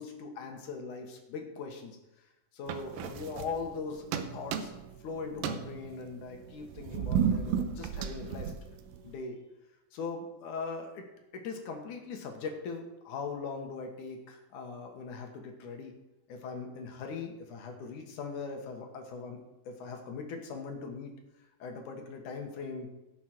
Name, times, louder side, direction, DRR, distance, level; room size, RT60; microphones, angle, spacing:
voice 1, 0.0-2.0 2.5-4.7 5.0-8.5 9.0-9.4 9.9-11.0 11.3-15.9 16.3-19.4 19.7-21.1 21.6-22.9, left 4 dB, 65° left, 3 dB, 2.6 m, -40 dB
sound 1, 2.7-3.8 4.1-5.0 5.3-9.1, right 8 dB, 80° right, 2.6 m, -33 dB
16.5 x 7.5 x 4.5 m, 0.99 s
omnidirectional pair, 4.3 m